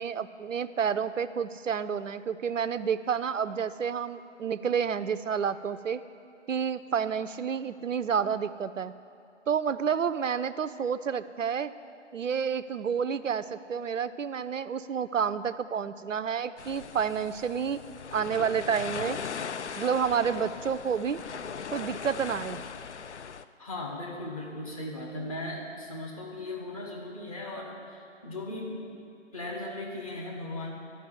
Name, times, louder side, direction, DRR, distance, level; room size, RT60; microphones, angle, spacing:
voice 1, 0.0-6.0 6.5-8.9 9.5-11.7 12.1-17.8 18.1-19.2 19.8-21.2 21.7-22.6, right 7 dB, 80° right, 13 dB, 0.5 m, -29 dB
sound 1, 16.6-23.4, left 6 dB, 65° left, 0.5 m, -39 dB
voice 2, 23.6-28.8 29.3-30.7, left 1 dB, 30° left, -1 dB, 1.3 m, -37 dB
12.0 x 5.1 x 7.8 m, 2.4 s
figure-of-eight pair, 155°, 37 cm